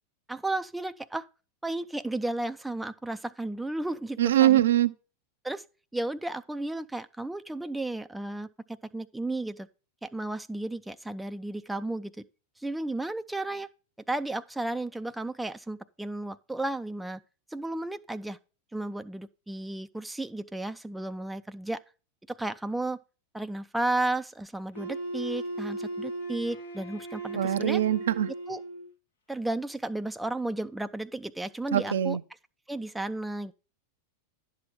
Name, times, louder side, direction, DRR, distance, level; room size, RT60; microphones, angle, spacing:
voice 1, 0.3-1.3 1.6-4.6 5.4-5.6 5.9-9.7 10.0-12.2 12.6-13.7 14.1-17.2 17.5-18.4 18.7-21.8 22.3-23.0 23.3-27.8 28.5-28.6 29.3-32.2 32.7-33.5, right 2 dB, 5° right, 0.4 m, -33 dB
voice 2, 4.2-4.9 27.3-28.3 31.7-32.2, right 12 dB, 65° right, 0.5 m, -23 dB
Wind instrument woodwind instrument, 24.7-28.9, right 2 dB, 75° left, 1.7 m, -37 dB
11.0 x 7.5 x 3.2 m
figure-of-eight pair, 90°, 0 cm